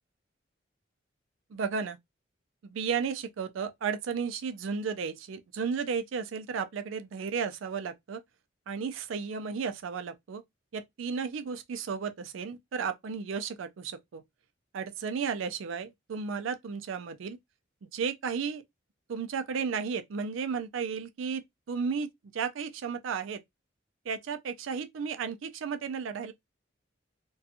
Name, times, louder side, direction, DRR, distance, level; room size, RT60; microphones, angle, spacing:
voice 1, 1.5-2.0 2.6-8.2 8.7-10.4 10.7-14.2 14.7-17.4 17.9-18.6 19.1-21.4 21.7-22.1 22.3-23.4 24.1-26.3, right 6 dB, 90° right, 0.4 m, -33 dB
2.5 x 2.3 x 2.7 m
head